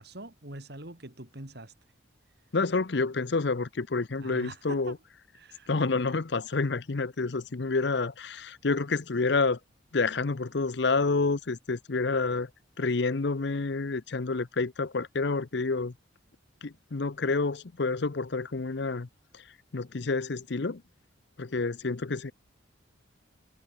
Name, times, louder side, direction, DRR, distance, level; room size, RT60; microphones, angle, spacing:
voice 1, 0.0-1.7 4.2-5.0 5.3-6.2, right 1 dB, 55° right, 2.8 m, -44 dB
voice 2, 2.5-5.0 5.7-9.6 9.9-12.5 12.8-15.9 16.6-19.1 19.3-19.4 19.7-20.8 21.4-22.3, left 3 dB, 60° left, 0.7 m, -28 dB
head